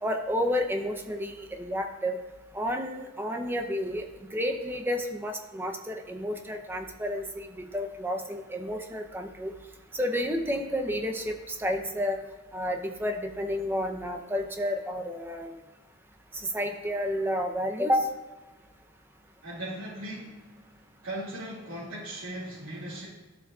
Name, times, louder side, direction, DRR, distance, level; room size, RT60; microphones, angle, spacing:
voice 1, 0.0-2.2 2.5-9.5 9.9-12.2 12.5-15.5 16.3-18.1, equal, 10° right, 4 dB, 0.6 m, -30 dB
voice 2, 19.4-20.4 21.0-23.1, right 1 dB, 80° right, -10 dB, 2.3 m, -38 dB
12.0 x 7.2 x 2.4 m, 1.2 s
head